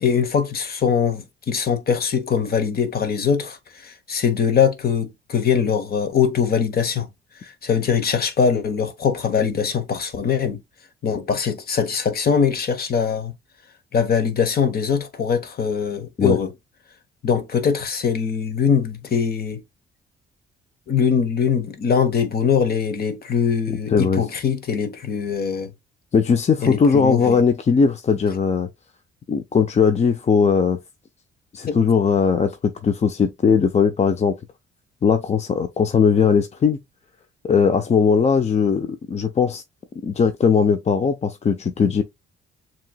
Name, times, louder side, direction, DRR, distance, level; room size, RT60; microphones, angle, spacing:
voice 1, 0.0-7.1 7.4-10.6 11.0-13.3 13.9-16.5 17.2-19.6 20.9-25.7 26.6-27.4 31.7-31.8, left 7 dB, 50° left, 1.1 m, -22 dB
voice 2, 23.9-24.2 26.1-28.7 29.3-30.8 31.5-32.6 32.8-34.3 35.0-36.8 37.4-39.6 40.0-42.0, left 6 dB, 35° left, 0.6 m, -19 dB
7.4 x 3.0 x 2.2 m
cardioid pair, 90°, 20 cm